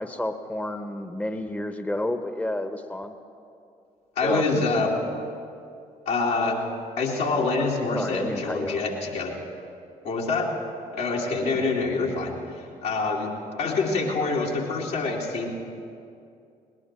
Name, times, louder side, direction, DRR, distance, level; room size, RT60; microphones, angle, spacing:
voice 1, 0.0-3.2 4.2-4.9 7.9-8.8, left 1 dB, 10° left, 8 dB, 0.9 m, -30 dB
voice 2, 4.2-5.0 6.1-6.6 7.0-9.4 10.0-10.5 10.9-13.3 13.6-15.5, left 3 dB, 75° left, -3 dB, 2.5 m, -26 dB
20.0 x 19.5 x 3.2 m, 2.5 s
figure-of-eight pair, 45°, 19 cm